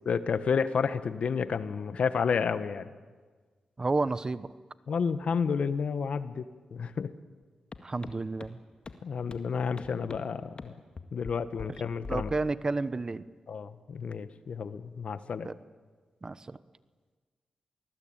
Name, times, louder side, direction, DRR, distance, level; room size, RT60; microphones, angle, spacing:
voice 1, 0.0-2.9 4.9-6.5 6.7-7.1 9.0-10.7 11.1-12.3 13.5-15.5, left 6 dB, 70° left, 12 dB, 1.3 m, -30 dB
voice 2, 3.8-4.5 7.8-8.6 12.1-13.2 15.4-15.5 16.2-16.6, right 3 dB, 35° right, 15 dB, 1.0 m, -31 dB
sound 1, 7.7-7.8 8.0-8.1 8.4-8.5 8.8-8.9 9.3-9.4 9.8-10.2 10.6-10.7 11.0-11.3 11.6-11.7 12.0-12.5, left 4 dB, 50° left, 1.9 m, -41 dB
26.5 x 20.0 x 8.9 m, 1.5 s
cardioid pair, 65°, 2 cm